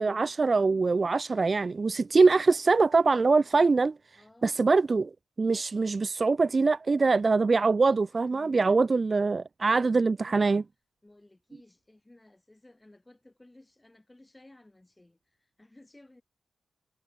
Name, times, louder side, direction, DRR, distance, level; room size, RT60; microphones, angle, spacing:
voice 1, 0.0-3.9 4.4-5.1 5.4-10.6, right 4 dB, 40° right, 0.5 m, -23 dB
voice 2, 4.1-4.6 8.0-9.0 9.6-9.9 10.2-10.7 11.0-16.2, left 1 dB, 15° left, 4.8 m, -56 dB
wide cardioid pair, 105°, 0 cm